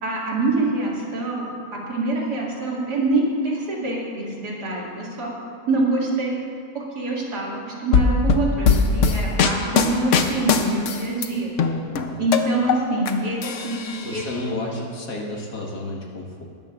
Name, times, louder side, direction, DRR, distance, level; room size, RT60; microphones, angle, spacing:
voice 1, 0.0-1.6 1.9-5.3 5.7-6.4 6.7-11.5 12.2-14.2, right 2 dB, 80° right, -4 dB, 2.9 m, -25 dB
sound 1, 7.9-11.3 11.6-13.1 13.4-14.3, left 5 dB, 55° left, 1.0 m, -20 dB
voice 2, 14.0-16.4, left 2 dB, 75° left, -1 dB, 2.2 m, -31 dB
20.5 x 12.5 x 2.5 m, 2.3 s
omnidirectional pair, 1.7 m